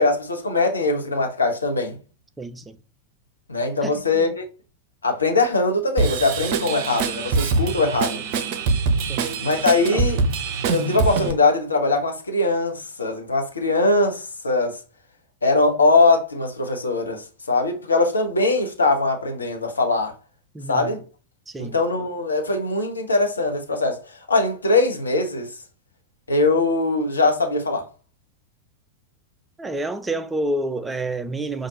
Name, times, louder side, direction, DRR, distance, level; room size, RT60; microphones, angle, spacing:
voice 1, 0.0-1.9 3.5-4.5 5.0-8.2 9.4-10.2 10.7-14.8 15.4-20.1 20.7-21.0 21.6-24.0 24.3-25.5 26.3-27.9, left 3 dB, 75° left, 1.0 m, -21 dB
voice 2, 2.4-2.8 3.8-4.3 7.7-7.9 9.1-9.3 9.9-10.0 20.5-21.0 21.5-21.7 29.6-31.7, right 2 dB, 10° right, 0.4 m, -29 dB
Drum kit / Drum, 6.0-11.3, right 4 dB, 45° right, 0.6 m, -24 dB
5.7 x 2.6 x 2.9 m
figure-of-eight pair, 90°, 0 cm